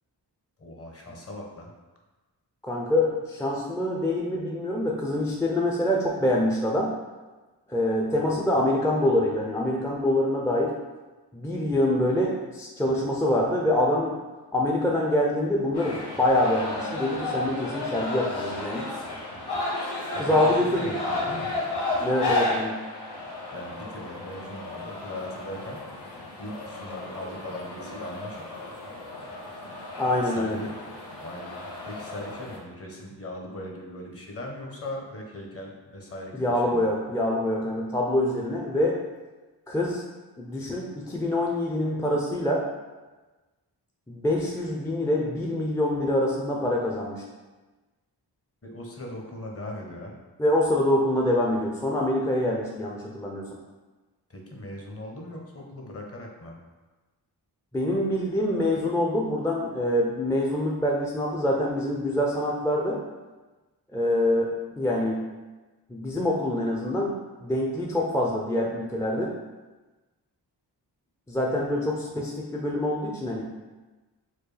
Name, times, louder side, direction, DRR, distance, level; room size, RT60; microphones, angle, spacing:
voice 1, 0.6-1.7 20.1-21.6 23.5-25.8 26.4-28.5 30.2-30.8 31.2-37.0 48.6-50.1 54.3-56.6, left 1 dB, 35° left, 0 dB, 0.9 m, -39 dB
voice 2, 2.6-6.9 7.7-10.7 11.3-14.2 14.5-18.8 20.2-20.9 22.0-22.8 30.0-30.6 36.4-39.0 39.7-40.0 40.4-42.6 44.1-47.2 50.4-53.5 57.7-63.0 63.9-65.2 65.9-69.3 71.3-73.4, left 1 dB, 5° left, -2 dB, 0.5 m, -25 dB
sound 1, 15.7-32.6, left 2 dB, 65° left, 1.1 m, -33 dB
4.4 x 2.3 x 3.3 m, 1.2 s
cardioid pair, 45°, 42 cm